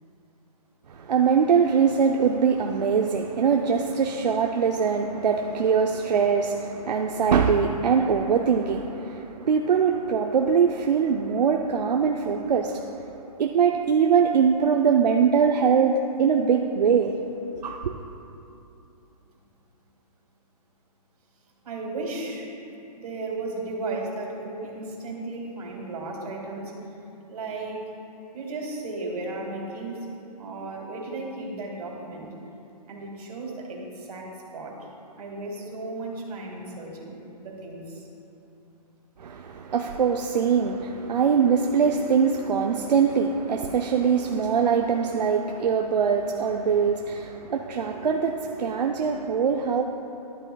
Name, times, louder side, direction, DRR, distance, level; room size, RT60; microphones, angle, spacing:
voice 1, 0.9-13.1 13.4-17.1 17.6-18.0 39.2-49.8, right 6 dB, 90° right, 2 dB, 0.6 m, -22 dB
voice 2, 21.6-22.5 23.0-26.7 27.3-27.9 28.3-30.1 30.4-32.3 32.9-34.9 35.2-38.1, right 2 dB, 65° right, -1 dB, 2.2 m, -35 dB
12.5 x 11.5 x 2.3 m, 2.8 s
hypercardioid pair, 160°, 21 cm